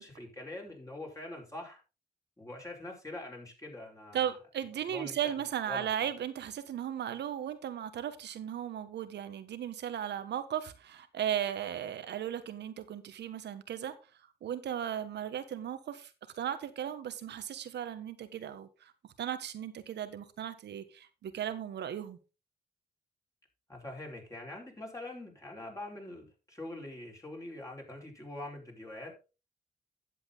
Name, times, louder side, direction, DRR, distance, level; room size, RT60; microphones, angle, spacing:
voice 1, 0.0-1.8 2.4-4.3 4.8-5.3 5.7-6.1 23.7-29.3, left 1 dB, 20° left, 0 dB, 4.7 m, -44 dB
voice 2, 4.1-13.9 14.4-18.9 19.2-22.2, right 10 dB, 85° right, 11 dB, 1.3 m, -36 dB
10.5 x 7.7 x 3.9 m, 0.31 s
cardioid pair, 65°, 17 cm